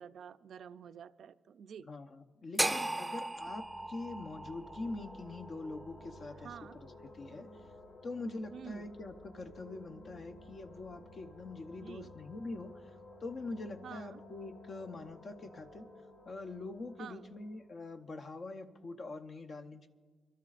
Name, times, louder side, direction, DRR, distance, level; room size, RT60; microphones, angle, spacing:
voice 1, 0.0-1.9 6.3-6.8 8.5-8.9 11.8-12.1 13.8-14.2 17.0-17.3, right 7 dB, 70° right, 12 dB, 0.4 m, -49 dB
voice 2, 1.9-6.5 7.1-7.5 8.0-12.9 13.2-15.9 16.3-19.9, left 2 dB, 45° left, 6 dB, 0.8 m, -44 dB
sound 1, 2.6-6.7, right 1 dB, 5° right, 0.6 m, -37 dB
sound 2, 3.1-18.7, left 2 dB, 70° left, 1.8 m, -55 dB
28.0 x 12.5 x 2.5 m, 1.5 s
cardioid pair, 110°, 0 cm